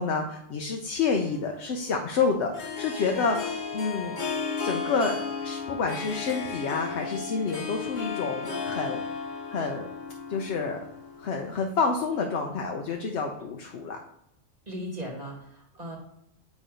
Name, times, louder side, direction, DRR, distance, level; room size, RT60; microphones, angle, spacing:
voice 1, 0.0-4.2 4.6-9.0 9.5-9.9 10.3-10.8 11.2-14.0, left 4 dB, 65° left, 2 dB, 0.9 m, -29 dB
Harp, 1.2-11.6, left 5 dB, 40° left, 1.2 m, -34 dB
voice 2, 2.9-3.2 14.7-16.0, equal, 35° right, -3 dB, 1.4 m, -38 dB
8.6 x 3.1 x 5.0 m, 0.78 s
omnidirectional pair, 1.3 m